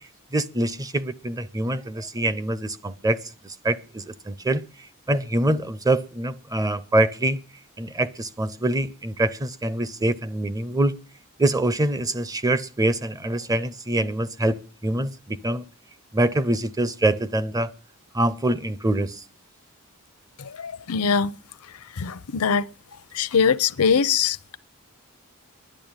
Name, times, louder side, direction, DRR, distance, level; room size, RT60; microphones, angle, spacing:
voice 1, 0.3-4.6 5.1-7.4 7.8-11.0 11.4-15.6 16.1-17.7 18.1-19.2, right 1 dB, 15° right, 0.6 m, -24 dB
voice 2, 20.4-21.3 21.9-22.7 23.1-24.6, left 6 dB, 80° left, 0.7 m, -22 dB
11.0 x 11.0 x 8.9 m
head